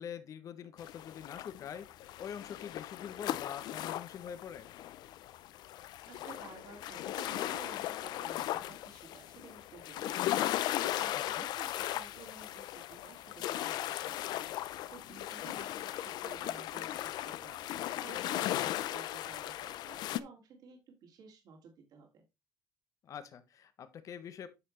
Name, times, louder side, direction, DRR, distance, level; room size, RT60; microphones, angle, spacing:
voice 1, 0.0-4.7 11.1-11.5 23.0-24.5, left 8 dB, 50° left, 1.2 m, -45 dB
sound 1, 0.8-20.2, left 13 dB, 70° left, 0.6 m, -37 dB
voice 2, 6.1-22.2, right 5 dB, 60° right, 2.6 m, -54 dB
9.6 x 5.9 x 3.2 m
cardioid pair, 150°, 7 cm